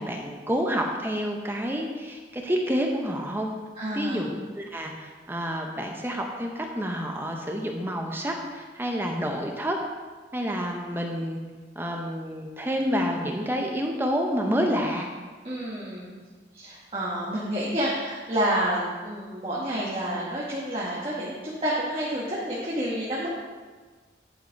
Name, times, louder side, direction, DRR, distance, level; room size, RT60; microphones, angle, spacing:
voice 1, 0.0-3.5 3.9-9.8 10.3-11.4 11.8-15.1, equal, 10° right, 2 dB, 0.7 m, -29 dB
voice 2, 3.8-4.4 15.4-16.2 16.5-23.3, right 1 dB, 30° right, -6 dB, 1.3 m, -29 dB
10.5 x 5.1 x 4.5 m, 1.4 s
head